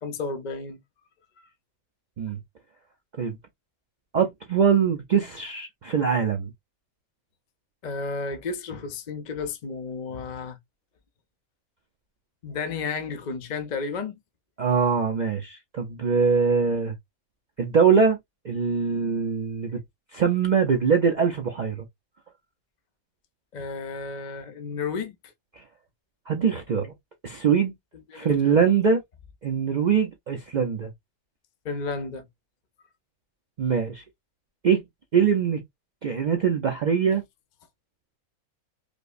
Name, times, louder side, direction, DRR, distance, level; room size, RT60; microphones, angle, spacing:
voice 1, 0.0-0.8 1.4-1.5 7.8-10.6 12.4-14.2 23.5-25.3 28.1-28.7 31.6-32.3, left 4 dB, 50° left, 0.5 m, -32 dB
voice 2, 4.1-6.5 14.6-16.9 17.6-18.2 18.4-19.8 20.1-21.8 25.5-25.6 26.3-26.9 27.2-27.7 28.1-29.0 29.4-30.9 33.6-34.0 34.6-34.8 35.1-35.6 36.0-37.2, right 6 dB, 90° right, 0.4 m, -23 dB
5.0 x 2.0 x 2.3 m
omnidirectional pair, 1.5 m